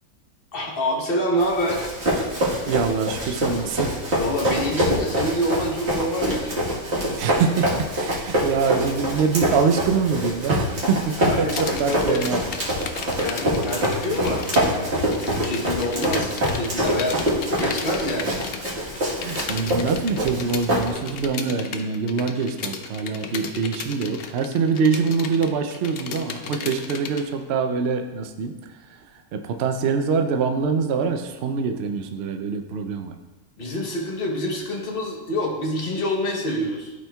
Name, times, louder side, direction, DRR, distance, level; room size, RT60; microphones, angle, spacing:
voice 1, 0.5-1.9 4.2-6.6 11.2-12.2 13.0-17.3 17.6-18.4 33.6-36.9, equal, 45° left, -1 dB, 1.1 m, -27 dB
Run, 1.4-21.2, equal, 50° right, 1.7 m, -25 dB
voice 2, 2.6-4.0 7.1-12.4 19.2-28.6 29.3-33.1, right 5 dB, 65° right, 6 dB, 0.6 m, -24 dB
sound 1, 11.5-14.7 15.0-27.2, left 6 dB, 75° left, 0.5 m, -35 dB
12.5 x 4.3 x 2.3 m, 1.2 s
omnidirectional pair, 1.5 m